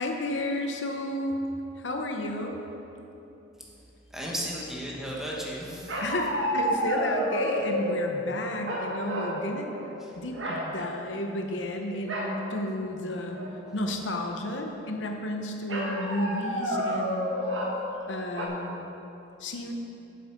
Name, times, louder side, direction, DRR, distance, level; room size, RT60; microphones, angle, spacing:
voice 1, 0.0-1.4 1.8-2.6 6.0-9.7 10.1-13.4 13.7-17.3 18.1-18.8 19.4-19.7, left 1 dB, 75° left, 3 dB, 0.8 m, -32 dB
voice 2, 4.1-6.0 10.0-10.2, equal, ahead, -4 dB, 1.3 m, -35 dB
sound 1, 5.9-8.0 8.6-9.4 9.7-10.0 10.3-10.7 12.1-12.4 12.9-13.0 13.3-13.8 15.7-17.8 18.4-18.5, equal, 80° right, 1.4 m, -30 dB
7.9 x 7.8 x 5.2 m, 2.9 s
head